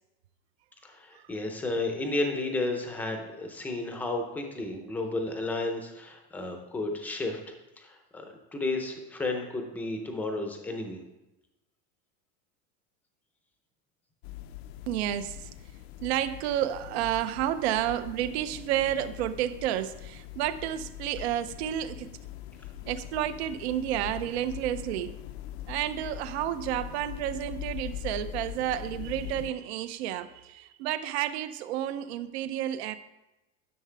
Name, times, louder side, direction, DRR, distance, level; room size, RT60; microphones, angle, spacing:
voice 1, 0.8-7.4 7.8-11.0, left 2 dB, 5° left, 3 dB, 0.6 m, -32 dB
sound 1, 14.2-29.5, left 12 dB, 60° left, 0.5 m, -42 dB
voice 2, 14.9-15.5 16.0-22.1 22.9-25.2 25.7-33.0, right 12 dB, 65° right, 13 dB, 0.6 m, -31 dB
11.0 x 6.5 x 3.3 m, 0.99 s
supercardioid pair, 175°, 35 cm